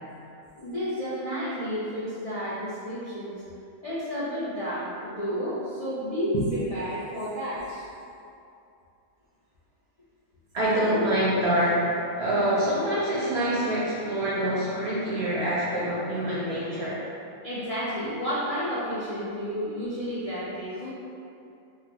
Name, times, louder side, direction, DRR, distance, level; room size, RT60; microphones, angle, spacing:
voice 1, 0.6-3.4 3.8-7.8 17.4-20.9, equal, 60° left, -11 dB, 0.3 m, -31 dB
voice 2, 10.5-17.0, right 1 dB, 55° right, -7 dB, 0.8 m, -25 dB
3.9 x 2.1 x 2.9 m, 2.6 s
omnidirectional pair, 1.5 m